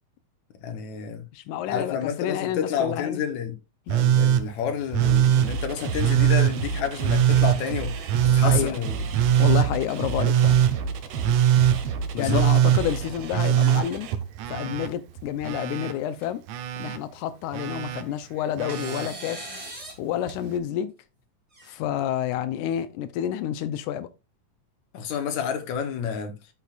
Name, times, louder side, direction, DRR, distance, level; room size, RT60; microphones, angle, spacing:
voice 1, 0.6-1.2 1.7-3.5 3.9-9.0 12.1-12.5 24.9-26.3, left 7 dB, 70° left, 2.6 m, -29 dB
voice 2, 1.3-3.2 3.9-4.0 8.4-8.8 9.4-10.6 12.2-14.1 14.5-16.4 16.8-19.5 20.0-20.9 21.6-24.1, left 11 dB, 90° left, 2.1 m, -29 dB
Telephone, 3.9-4.4 4.9-5.5 6.0-6.5 7.0-7.6 8.1-8.6 9.1-9.7 10.2-10.7 11.2-11.8 12.3-12.8 13.3-14.9 15.2-15.9 16.5-17.0 17.5-18.0 18.6-19.1 20.3-20.4, right 10 dB, 85° right, 2.2 m, -21 dB
sound 1, 5.0-14.1, right 4 dB, 65° right, 1.9 m, -32 dB
sound 2, 13.3-14.0 14.4-14.9 15.7-15.8 16.2-16.3 17.6-18.2 18.7-20.0 20.3-20.4 21.5-22.3, right 2 dB, 15° right, 1.6 m, -42 dB
12.5 x 5.9 x 2.4 m
omnidirectional pair, 3.5 m